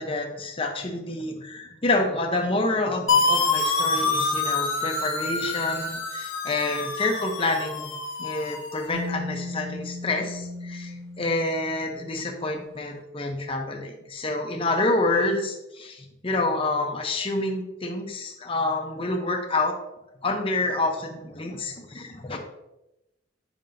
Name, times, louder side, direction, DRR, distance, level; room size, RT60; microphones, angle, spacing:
voice 1, 0.0-19.7 20.2-22.4, left 2 dB, 25° left, 2 dB, 0.7 m, -28 dB
sound 1, 3.1-8.9, left 3 dB, 75° left, 0.9 m, -26 dB
sound 2, 8.9-12.7, left 2 dB, 75° right, 1.1 m, -37 dB
7.5 x 5.2 x 2.6 m, 0.93 s
head